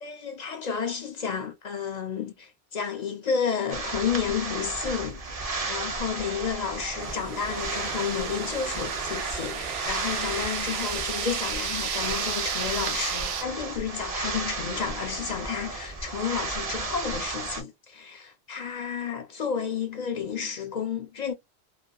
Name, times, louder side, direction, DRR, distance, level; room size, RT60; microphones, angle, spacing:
voice 1, 0.0-21.3, left 7 dB, 55° left, 0.5 m, -31 dB
sound 1, 3.7-17.6, right 3 dB, 45° right, 0.6 m, -34 dB
sound 2, 7.0-13.4, right 7 dB, 90° right, 0.8 m, -33 dB
2.6 x 2.3 x 2.2 m
omnidirectional pair, 1.0 m